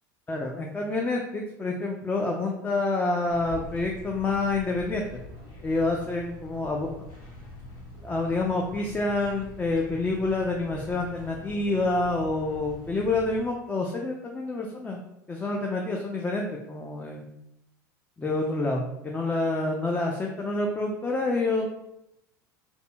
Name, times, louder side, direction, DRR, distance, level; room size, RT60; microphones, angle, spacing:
voice 1, 0.3-5.0 5.6-6.9 8.0-15.0 15.3-17.2 18.2-21.7, left 2 dB, 15° left, 0 dB, 0.3 m, -28 dB
sound 1, 3.3-13.4, left 2 dB, 70° left, 1.3 m, -44 dB
2.7 x 2.4 x 2.2 m, 0.83 s
hypercardioid pair, 80°, 10 cm